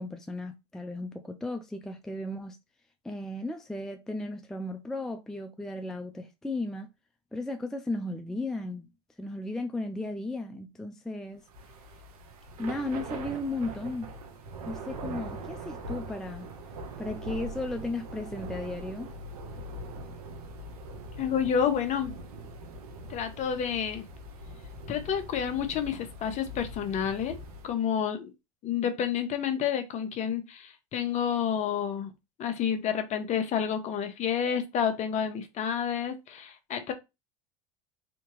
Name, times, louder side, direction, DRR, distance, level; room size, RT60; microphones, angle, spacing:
voice 1, 0.0-2.6 3.0-6.9 7.3-8.9 9.2-11.4 12.6-14.1 14.7-16.5 17.0-19.1, left 2 dB, 5° left, 0.4 m, -35 dB
Thunder / Rain, 11.5-27.8, right 2 dB, 90° right, 1.0 m, -42 dB
voice 2, 21.2-22.1 23.1-24.0 24.9-27.4 27.6-28.3 28.6-32.1 32.4-36.9, left 8 dB, 40° left, 0.9 m, -29 dB
3.5 x 2.8 x 3.0 m
supercardioid pair, 105°, 19 cm